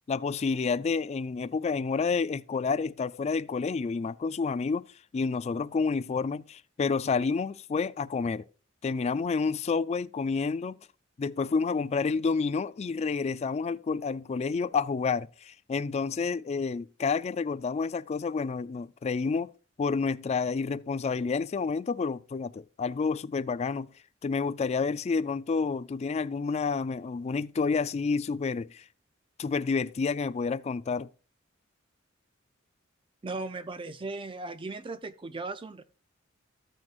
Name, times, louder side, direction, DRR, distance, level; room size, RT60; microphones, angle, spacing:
voice 1, 0.1-4.9 5.1-8.4 8.8-10.8 11.2-19.5 19.8-23.9 24.2-28.8 29.4-31.1, left 4 dB, 35° left, 0.3 m, -29 dB
voice 2, 33.2-35.8, right 3 dB, 25° right, 0.5 m, -37 dB
15.0 x 6.0 x 2.4 m
head